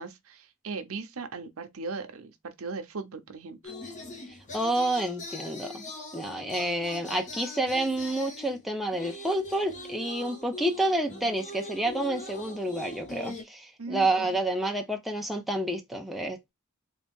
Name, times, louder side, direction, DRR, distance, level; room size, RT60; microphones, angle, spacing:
voice 1, 0.0-3.7 13.8-14.4, right 3 dB, 70° right, 0.7 m, -38 dB
sound 1, 3.6-8.6 8.9-13.4, left 2 dB, 35° left, 1.0 m, -41 dB
voice 2, 4.5-16.5, right 1 dB, ahead, 0.6 m, -29 dB
4.0 x 2.5 x 3.5 m
head